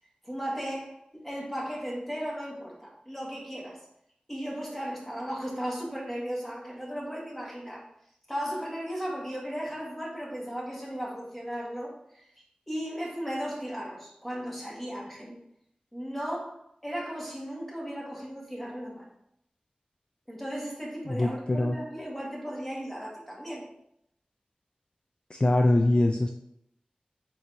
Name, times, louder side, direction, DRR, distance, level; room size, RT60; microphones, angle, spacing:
voice 1, 0.2-3.8 4.3-7.9 8.3-15.4 15.9-19.1 20.3-23.7, equal, 10° left, -3 dB, 1.5 m, -36 dB
voice 2, 21.1-21.7 25.3-26.3, left 1 dB, 40° left, 3 dB, 0.3 m, -23 dB
4.6 x 3.9 x 2.7 m, 0.74 s
wide cardioid pair, 55°, 3 cm